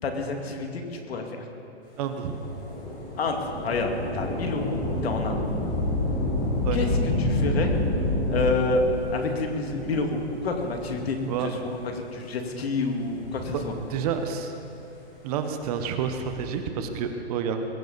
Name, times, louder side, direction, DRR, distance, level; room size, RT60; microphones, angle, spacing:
voice 1, 0.0-1.4 3.2-5.3 6.7-6.9 7.2-7.7 8.3-8.8 9.1-13.7, left 3 dB, 65° left, 3 dB, 2.5 m, -29 dB
voice 2, 2.0-2.5 6.6-6.8 11.3-11.5 13.5-13.6 13.9-14.5 15.2-17.7, right 7 dB, 35° right, 6 dB, 1.2 m, -29 dB
Thunder / Rain, 2.3-11.2 12.0-12.1 13.0-14.3 15.8-16.6, left 1 dB, 25° left, 4.7 m, -29 dB
21.5 x 15.5 x 4.2 m, 2.7 s
hypercardioid pair, 140°, 33 cm